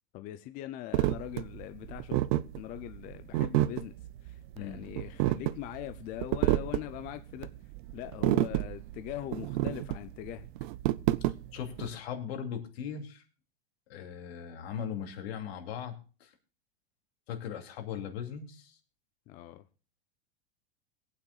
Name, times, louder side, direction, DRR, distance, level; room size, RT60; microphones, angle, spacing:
voice 1, 0.1-2.2 2.6-3.9 4.2-7.5 7.9-10.5 19.3-19.6, left 14 dB, 25° left, 0.5 m, -41 dB
sound 1, 0.9-11.9, right 15 dB, 50° right, 0.5 m, -30 dB
voice 2, 4.5-4.9 11.5-13.2 13.9-16.3 17.3-18.8, left 8 dB, 75° left, 2.7 m, -39 dB
22.0 x 8.9 x 2.3 m
supercardioid pair, 155°, 32 cm